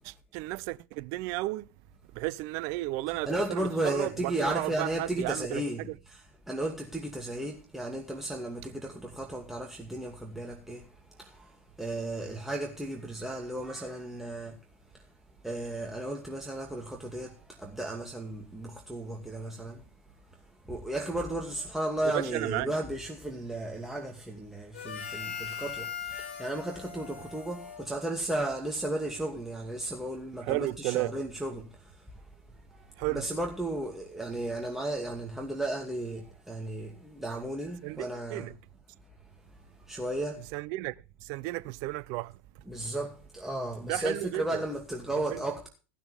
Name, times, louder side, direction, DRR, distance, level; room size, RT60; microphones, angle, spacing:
voice 1, 0.0-1.7 2.1-6.0 22.0-22.7 30.4-31.1 33.0-33.3 37.8-38.6 40.5-40.9 41.2-42.6 43.9-44.6 45.3-45.4, right 19 dB, 50° right, 0.6 m, -33 dB
voice 2, 3.3-14.6 14.9-15.1 15.4-19.8 20.3-32.2 32.7-38.5 39.8-40.5 42.7-45.7, right 1 dB, 5° right, 2.4 m, -34 dB
Harmonica, 24.7-28.5, left 7 dB, 75° left, 5.3 m, -40 dB
15.5 x 12.0 x 3.5 m
figure-of-eight pair, 80°, 7 cm